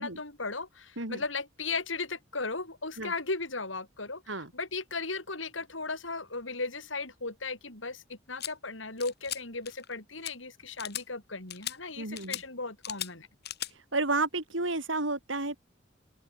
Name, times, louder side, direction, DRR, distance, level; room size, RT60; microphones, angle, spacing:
voice 1, 0.0-13.3, left 3 dB, 90° left, 7.9 m, -36 dB
sound 1, 8.4-8.5 9.0-9.4 9.7-9.9 10.2-10.3 10.8-11.0 11.5-11.8 12.2-12.4 12.8-13.1 13.4-13.7, left 12 dB, 60° left, 6.6 m, -37 dB
voice 2, 12.0-12.4 13.9-15.6, right 2 dB, 80° right, 6.8 m, -31 dB
open air
head